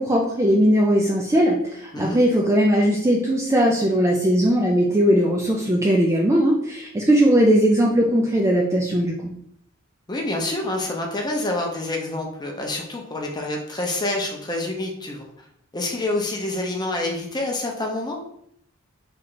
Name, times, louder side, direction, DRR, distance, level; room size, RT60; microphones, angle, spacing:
voice 1, 0.0-9.3, equal, 15° right, -1 dB, 0.4 m, -19 dB
voice 2, 10.1-15.2 15.7-18.2, left 2 dB, 20° left, 1 dB, 0.7 m, -27 dB
3.3 x 3.2 x 3.9 m, 0.70 s
head